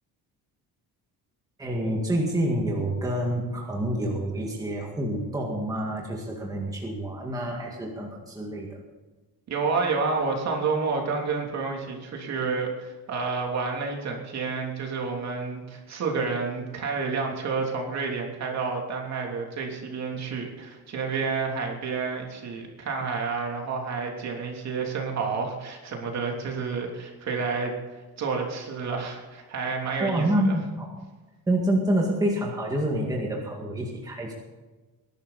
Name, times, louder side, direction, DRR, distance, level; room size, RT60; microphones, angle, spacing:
voice 1, 1.6-8.8 30.0-30.9 31.5-34.3, right 1 dB, 10° right, -2 dB, 2.0 m, -27 dB
voice 2, 9.5-27.7 28.2-30.6, right 4 dB, 45° right, 1 dB, 3.1 m, -29 dB
21.0 x 11.5 x 4.2 m, 1.2 s
cardioid pair, 170°, 38 cm